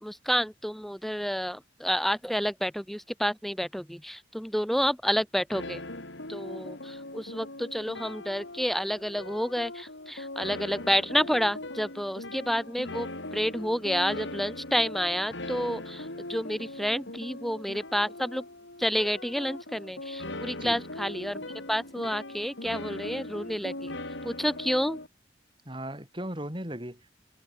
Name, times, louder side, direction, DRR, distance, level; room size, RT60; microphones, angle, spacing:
voice 1, 0.0-5.8 6.3-18.4 18.8-21.4 21.7-23.9 24.2-25.0, equal, ahead, 1.4 m, -29 dB
sound 1, 5.5-25.1, left 2 dB, 80° left, 5.8 m, -40 dB
voice 2, 25.7-27.1, right 1 dB, 25° right, 7.0 m, -37 dB
head